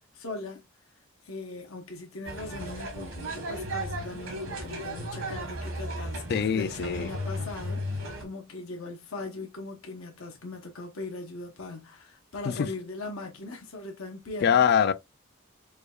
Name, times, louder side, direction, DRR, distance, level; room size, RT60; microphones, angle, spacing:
voice 1, 0.1-0.6 1.2-14.7, left 3 dB, 90° left, 0.9 m, -40 dB
sound 1, 2.3-8.2, equal, 75° right, 1.4 m, -35 dB
voice 2, 6.3-7.1 12.5-12.7 14.4-14.9, left 7 dB, 50° left, 0.3 m, -23 dB
4.7 x 2.3 x 2.3 m
head